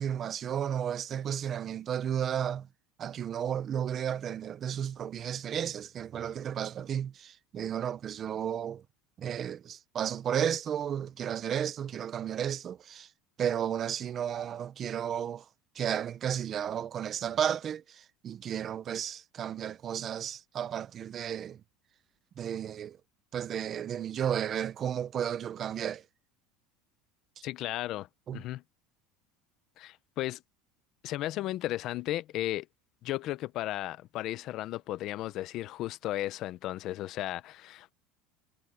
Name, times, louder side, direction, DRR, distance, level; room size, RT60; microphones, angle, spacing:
voice 1, 0.0-2.7 3.0-8.8 9.2-13.1 13.4-15.4 15.8-21.6 22.4-23.0 23.3-26.0 28.3-28.4, right 9 dB, 25° right, 0.5 m, -33 dB
voice 2, 27.4-28.1 28.3-28.6 29.8-30.4 31.0-32.7 33.0-37.9, left 15 dB, 40° left, 0.6 m, -35 dB
cardioid pair, 175°, 0 cm